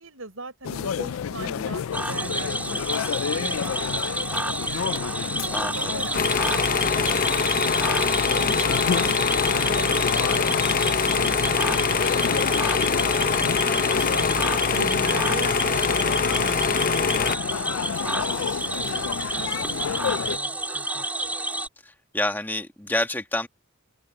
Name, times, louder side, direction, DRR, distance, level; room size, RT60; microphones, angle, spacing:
voice 1, 0.0-2.8 3.1-5.0 5.6-6.6 7.0-12.5 13.9-14.3 14.7-17.6 17.9-18.7 19.1-21.4, right 2 dB, 75° right, 6.6 m, -40 dB
sound 1, 0.6-20.4, left 7 dB, 80° left, 0.4 m, -31 dB
Cricket / Frog, 1.9-21.7, right 2 dB, 10° right, 2.1 m, -30 dB
voice 2, 5.5-5.9 13.7-14.0 22.1-23.5, left 1 dB, 10° left, 1.6 m, -28 dB
sound 2, 6.1-17.4, left 5 dB, 40° left, 0.7 m, -23 dB
open air
head